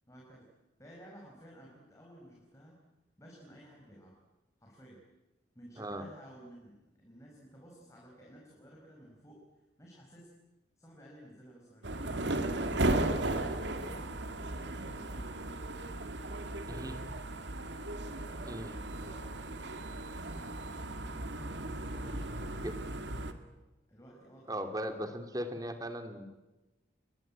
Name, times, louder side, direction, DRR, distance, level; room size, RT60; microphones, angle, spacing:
voice 1, 0.1-0.5 0.8-2.8 3.2-4.2 4.6-5.0 5.6-9.4 9.8-10.3 10.8-12.8 13.3-14.2 14.5-15.4 16.4-16.9 18.2-20.9 21.6-22.5 23.9-24.7, equal, 15° left, -2 dB, 5.4 m, -55 dB
sound 1, 11.8-23.3, right 2 dB, 70° right, 2.3 m, -36 dB
voice 2, 18.4-18.7 22.5-22.7 24.5-26.2, equal, 20° right, 7 dB, 2.7 m, -38 dB
28.5 x 23.0 x 8.9 m, 1.1 s
head